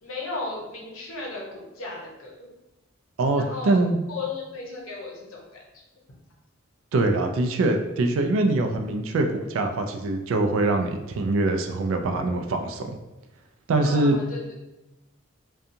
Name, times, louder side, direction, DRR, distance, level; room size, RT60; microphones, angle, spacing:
voice 1, 0.0-2.5 3.4-3.8 4.1-5.6 13.8-14.4, left 3 dB, 70° left, -3 dB, 0.7 m, -35 dB
voice 2, 3.2-4.0 6.9-12.9 13.7-14.2, right 2 dB, 65° right, 4 dB, 0.3 m, -23 dB
2.7 x 2.3 x 2.5 m, 0.98 s
head